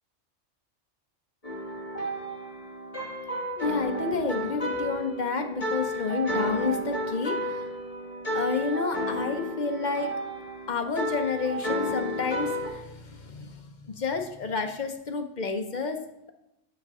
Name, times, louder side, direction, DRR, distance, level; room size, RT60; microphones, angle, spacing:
sound 1, 1.4-12.7, equal, 30° left, 1.6 m, -32 dB
voice 1, 3.6-7.7 8.3-10.1 10.7-16.0, left 4 dB, 50° left, 5 dB, 0.6 m, -30 dB
7.3 x 5.8 x 3.6 m, 0.88 s
omnidirectional pair, 1.3 m